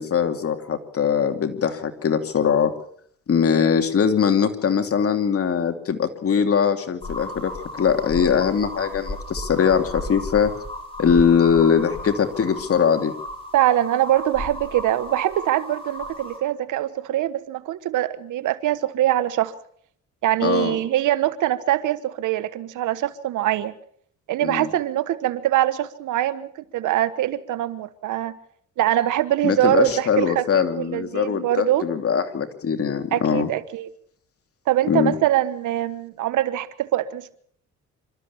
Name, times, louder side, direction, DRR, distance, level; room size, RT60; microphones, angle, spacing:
voice 1, 0.0-2.7 3.3-10.5 11.0-13.1 20.4-20.8 24.4-24.7 29.4-33.5 34.9-35.1, left 7 dB, 50° left, 7 dB, 2.8 m, -21 dB
voice 2, 3.5-3.8 13.5-19.5 20.2-23.7 24.3-28.3 28.8-31.8 33.1-33.9 34.7-37.3, right 13 dB, 85° right, 14 dB, 1.4 m, -23 dB
sound 1, 7.0-16.4, left 1 dB, 20° left, 6.4 m, -35 dB
27.5 x 13.5 x 7.1 m, 0.62 s
cardioid pair, 90°, 30 cm